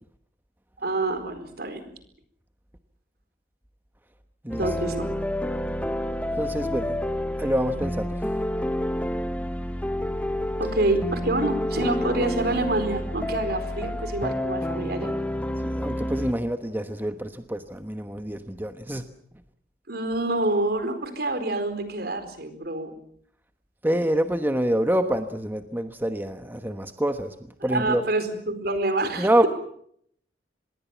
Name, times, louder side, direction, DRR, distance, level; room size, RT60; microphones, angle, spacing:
voice 1, 0.8-1.9 4.6-5.0 10.6-15.1 19.9-22.9 27.7-29.5, right 2 dB, 60° right, 9 dB, 4.5 m, -27 dB
sound 1, 4.5-16.3, left 1 dB, 10° left, 1.1 m, -29 dB
voice 2, 6.4-7.0 7.4-8.1 15.6-19.0 23.8-27.3 27.6-28.0 29.2-29.5, right 1 dB, 10° right, 8 dB, 1.1 m, -26 dB
26.0 x 21.5 x 7.2 m, 0.68 s
head